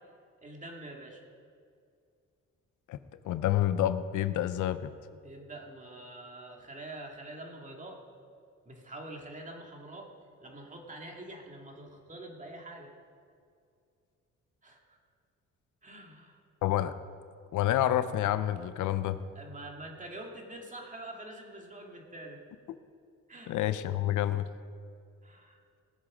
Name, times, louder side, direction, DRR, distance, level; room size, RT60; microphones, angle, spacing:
voice 1, 0.4-1.2 5.2-8.0 8.6-10.1 10.4-12.9 14.6-15.0 15.8-16.4 19.3-22.4 23.3-23.6 25.2-25.6, right 1 dB, 25° right, 1 dB, 2.3 m, -45 dB
voice 2, 3.2-4.9 16.6-16.9 17.5-19.2 23.5-24.4, left 12 dB, 80° left, 12 dB, 0.6 m, -28 dB
19.0 x 7.3 x 5.0 m, 2.3 s
cardioid pair, 90°, 30 cm